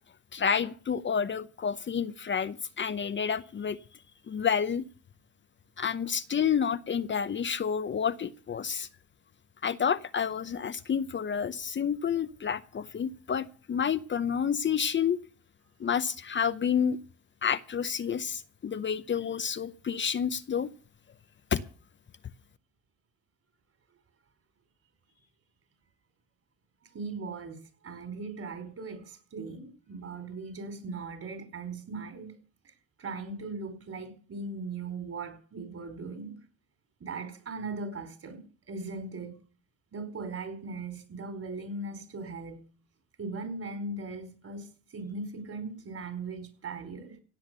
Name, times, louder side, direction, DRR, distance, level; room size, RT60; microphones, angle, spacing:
voice 1, 0.3-3.8 4.3-4.8 5.8-8.9 9.6-15.2 15.8-17.0 17.4-20.7 21.5-21.6, left 7 dB, 40° left, 0.8 m, -29 dB
voice 2, 26.9-27.6 27.8-32.3 33.0-36.4 37.0-39.4 39.9-42.6 43.2-47.2, right 3 dB, 50° right, 4.6 m, -39 dB
16.5 x 8.7 x 6.9 m
cardioid pair, 90°, 30 cm